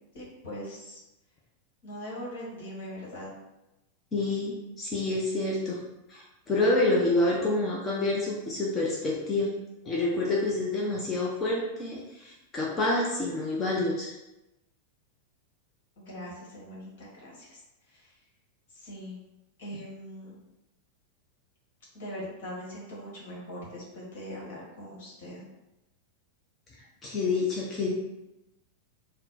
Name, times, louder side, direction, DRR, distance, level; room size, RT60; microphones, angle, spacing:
voice 1, 0.1-1.0 1.8-3.4 16.0-17.6 17.9-18.2 18.7-19.2 19.6-20.4 21.9-25.4, equal, 55° left, -4 dB, 1.5 m, -41 dB
voice 2, 4.1-5.8 6.1-9.6 9.9-14.1 27.0-27.9, left 2 dB, 20° left, -4 dB, 0.7 m, -28 dB
4.1 x 2.2 x 4.0 m, 0.96 s
figure-of-eight pair, 90°, 0 cm